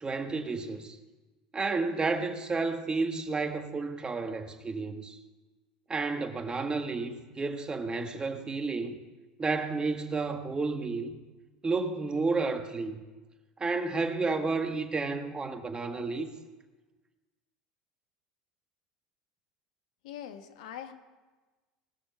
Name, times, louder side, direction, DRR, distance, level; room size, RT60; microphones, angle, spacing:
voice 1, 0.0-1.0 1.5-5.2 5.9-9.0 9.4-11.2 11.6-13.0 13.6-16.3, right 3 dB, 25° right, 1.8 m, -31 dB
voice 2, 20.0-20.9, left 10 dB, 75° left, 1.3 m, -42 dB
18.5 x 6.6 x 9.3 m
hypercardioid pair, 80°, 4 cm